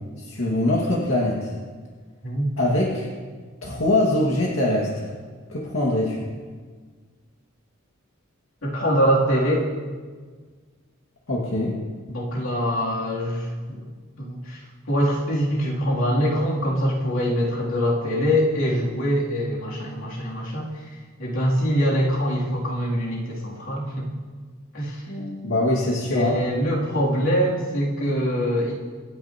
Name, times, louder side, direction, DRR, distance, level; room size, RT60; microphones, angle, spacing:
voice 1, 0.2-1.5 2.6-3.1 3.6-5.1 5.5-6.2 11.3-11.8 25.1-26.4, left 1 dB, 90° left, -4 dB, 2.0 m, -23 dB
voice 2, 2.2-2.5 8.6-9.7 12.1-13.9 14.2-24.1 24.7-25.0 26.1-28.7, equal, 70° left, -5 dB, 3.0 m, -24 dB
25.5 x 9.9 x 3.0 m, 1.5 s
head